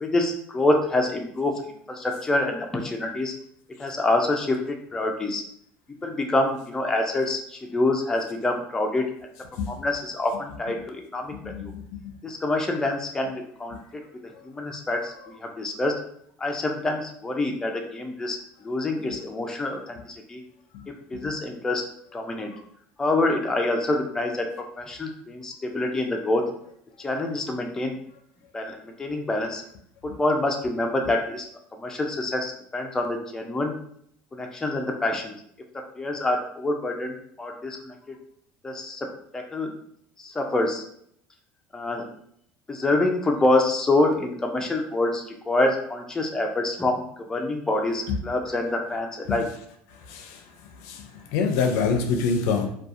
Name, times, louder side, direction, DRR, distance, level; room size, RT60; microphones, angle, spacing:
voice 1, 0.0-1.6 1.9-3.3 3.8-5.4 6.0-9.1 9.7-11.3 11.6-11.7 12.2-13.8 14.2-15.9 16.4-18.4 18.6-20.4 21.1-22.5 23.0-24.5 24.8-26.4 27.0-28.0 28.5-29.6 30.0-31.4 31.8-33.8 34.3-35.4 36.0-38.2 38.6-39.8 40.2-40.8 41.7-42.1 42.7-47.0 47.3-49.4, left 2 dB, 10° left, 2 dB, 0.3 m, -26 dB
voice 2, 11.5-12.1 20.7-20.9 49.3-49.4 50.1-50.4 50.8-52.7, left 5 dB, 75° left, 5 dB, 0.4 m, -26 dB
2.7 x 2.3 x 2.4 m, 0.68 s
cardioid pair, 120°, 5 cm